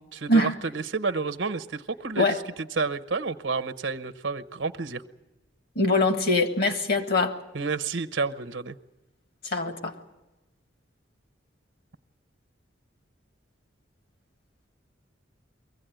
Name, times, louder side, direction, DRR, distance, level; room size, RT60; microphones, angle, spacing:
voice 1, 0.1-2.3 2.8-5.0 7.5-8.8, right 4 dB, 80° right, 1.0 m, -30 dB
voice 2, 5.8-7.4 9.4-9.9, left 2 dB, 55° left, 1.9 m, -23 dB
23.5 x 16.0 x 9.2 m
head